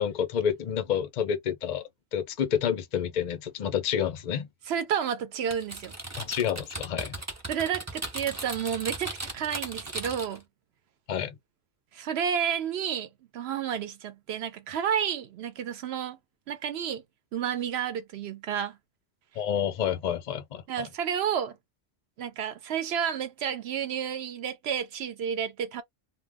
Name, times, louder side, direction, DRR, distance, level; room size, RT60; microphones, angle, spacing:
voice 1, 0.0-1.8 2.1-4.5 6.2-7.1 11.1-11.4 19.4-20.9, left 8 dB, 55° left, 0.4 m, -29 dB
voice 2, 4.7-5.9 7.5-10.4 11.9-16.2 16.5-17.0 17.3-18.8 20.7-21.6 22.2-25.8, right 8 dB, 65° right, 0.8 m, -31 dB
Typing, 5.5-10.4, right 2 dB, 25° right, 0.4 m, -37 dB
2.2 x 2.1 x 3.4 m
omnidirectional pair, 1.3 m